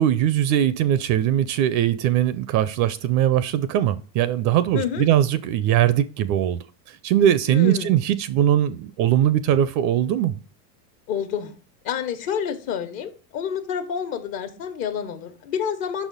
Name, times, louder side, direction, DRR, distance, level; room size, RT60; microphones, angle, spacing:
voice 1, 0.0-6.6 6.9-10.4, right 11 dB, 40° right, 0.4 m, -20 dB
voice 2, 4.7-5.0 7.5-7.9 11.1-11.5 11.8-16.1, left 8 dB, 55° left, 1.3 m, -28 dB
5.8 x 4.1 x 5.3 m
hypercardioid pair, 105°, 49 cm